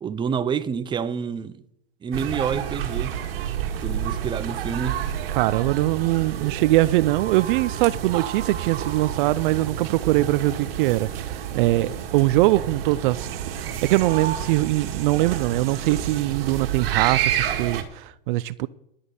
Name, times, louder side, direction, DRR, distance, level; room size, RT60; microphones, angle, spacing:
voice 1, 0.0-1.6 2.0-3.1 3.8-5.0, right 6 dB, 15° right, 0.7 m, -28 dB
sound 1, 2.1-17.8, right 10 dB, 75° right, 2.0 m, -29 dB
voice 2, 5.3-13.3 13.6-18.7, right 17 dB, 60° right, 0.5 m, -22 dB
11.5 x 8.7 x 6.6 m
hypercardioid pair, 125°, 29 cm